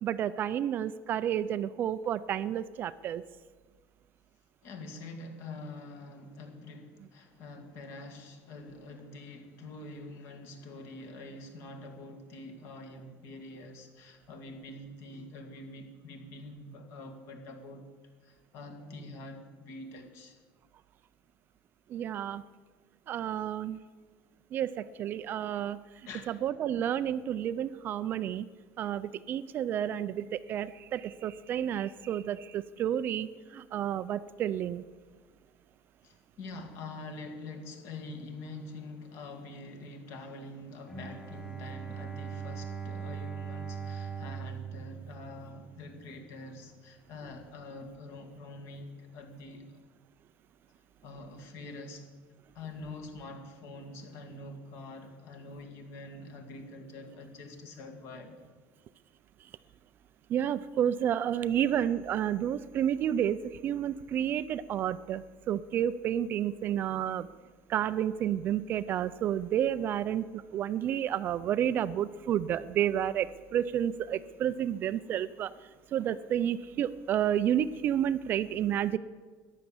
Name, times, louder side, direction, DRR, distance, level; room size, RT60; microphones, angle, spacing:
voice 1, 0.0-3.2 21.9-22.4 23.1-23.8 24.5-25.8 26.3-28.5 28.8-34.8 60.3-63.4 63.6-67.3 67.7-75.5 75.9-79.0, right 10 dB, 35° right, 14 dB, 0.4 m, -30 dB
voice 2, 4.6-17.9 18.2-20.4 26.1-26.4 36.0-49.8 51.0-52.1 52.5-58.4, left 2 dB, 50° left, 6 dB, 2.1 m, -45 dB
Bowed string instrument, 40.9-45.8, right 6 dB, 10° left, 1.9 m, -40 dB
14.0 x 11.0 x 7.1 m, 1.4 s
cardioid pair, 175°, 6 cm